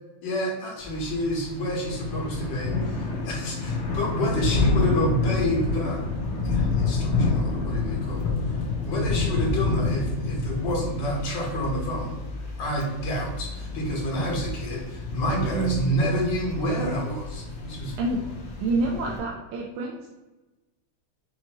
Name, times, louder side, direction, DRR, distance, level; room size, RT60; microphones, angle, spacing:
voice 1, 0.2-6.0 6.4-12.1 12.6-18.0, equal, 60° left, -4 dB, 1.9 m, -29 dB
Thunder / Rain, 0.8-19.2, left 3 dB, 75° left, 0.6 m, -29 dB
voice 2, 15.3-15.9 18.0-18.2 18.6-20.1, right 3 dB, 90° right, -2 dB, 1.5 m, -27 dB
5.7 x 2.9 x 2.9 m, 1.1 s
omnidirectional pair, 2.4 m